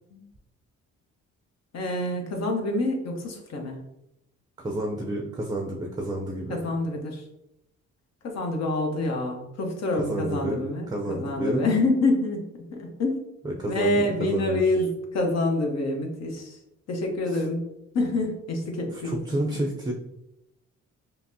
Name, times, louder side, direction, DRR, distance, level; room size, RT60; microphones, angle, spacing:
voice 1, 1.7-3.8 6.5-7.2 8.2-13.2 13.7-16.6 16.9-17.7 17.9-19.2 19.5-19.6, left 2 dB, 60° left, 2 dB, 1.0 m, -27 dB
voice 2, 4.6-6.6 10.0-10.6 10.9-11.6 13.4-14.6 19.0-19.9, right 1 dB, 15° right, 1 dB, 0.5 m, -30 dB
5.6 x 2.0 x 2.7 m, 0.85 s
cardioid pair, 90°, 30 cm